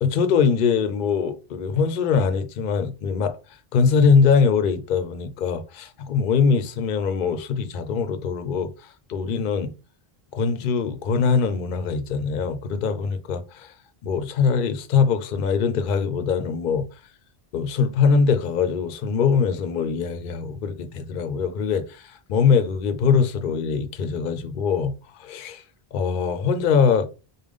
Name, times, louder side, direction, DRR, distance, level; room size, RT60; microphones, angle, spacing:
voice 1, 0.0-3.4 3.7-9.7 10.3-13.7 14.0-16.9 17.5-25.6 25.9-27.1, left 5 dB, 60° left, 0.6 m, -22 dB
5.0 x 2.1 x 3.5 m
omnidirectional pair, 1.0 m